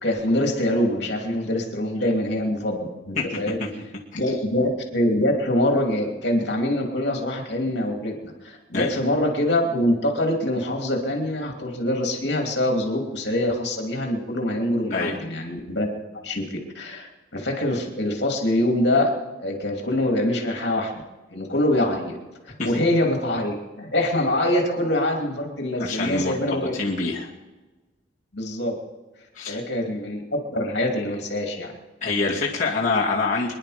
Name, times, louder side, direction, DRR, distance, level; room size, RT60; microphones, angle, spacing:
voice 1, 0.0-3.6 4.1-16.5 16.7-19.1 19.4-20.9 21.3-22.2 22.5-26.7 28.3-28.8 29.5-31.7, left 1 dB, 60° left, 1 dB, 2.8 m, -24 dB
voice 2, 25.8-27.3 29.3-29.6 32.0-33.5, left 3 dB, 40° left, -6 dB, 2.2 m, -25 dB
25.5 x 10.5 x 5.1 m, 1.2 s
head